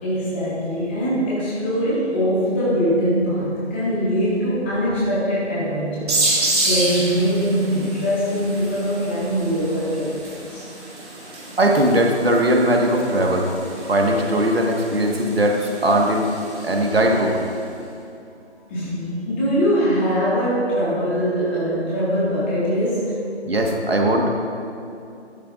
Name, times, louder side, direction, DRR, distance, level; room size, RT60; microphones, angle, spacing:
voice 1, 0.0-10.7 18.7-23.2, equal, 10° left, -9 dB, 1.6 m, -22 dB
sound 1, 6.1-17.4, right 2 dB, 35° right, 2.8 m, -29 dB
voice 2, 11.6-13.5 13.9-16.3 16.6-17.4 23.4-24.3, right 1 dB, 55° right, 1 dB, 1.5 m, -19 dB
14.5 x 12.0 x 2.5 m, 2.7 s
figure-of-eight pair, 165°, 35 cm